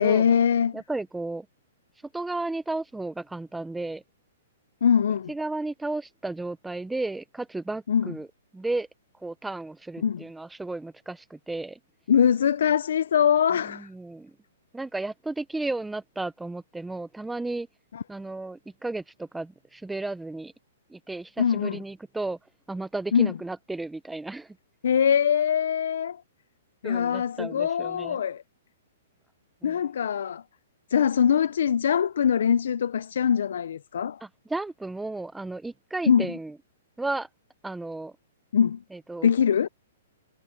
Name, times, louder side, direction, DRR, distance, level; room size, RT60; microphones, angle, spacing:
voice 1, 0.0-0.8 4.8-5.3 7.9-8.1 10.0-10.2 12.1-13.9 17.9-18.0 21.4-21.8 23.1-23.3 24.8-26.2 26.8-28.4 29.6-30.4 30.9-34.2 36.1-36.3 38.5-38.8 39.2-39.7, left 8 dB, 70° left, 0.4 m, -23 dB
voice 2, 0.7-1.5 2.1-4.0 5.3-8.3 8.5-8.9 9.2-11.8 13.6-14.3 14.7-17.7 18.1-20.5 20.9-22.4 22.7-24.6 26.8-28.2 29.6-29.8 34.2-36.6 37.0-37.3 37.6-38.1 38.9-39.3, right 2 dB, 5° right, 0.6 m, -33 dB
hypercardioid pair, 170°, 0 cm